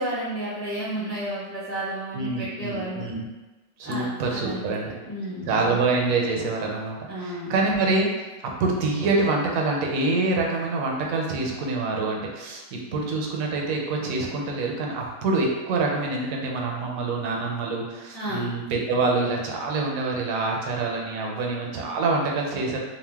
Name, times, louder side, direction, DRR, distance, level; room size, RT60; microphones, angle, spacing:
voice 1, 0.0-3.0 3.8-5.7 7.1-7.5 18.1-18.5, right 1 dB, 20° left, -8 dB, 0.4 m, -32 dB
voice 2, 2.1-3.2 3.8-4.9 5.4-8.1 8.6-22.8, right 3 dB, 85° right, 0 dB, 1.0 m, -26 dB
2.7 x 2.0 x 3.3 m, 1.2 s
omnidirectional pair, 1.4 m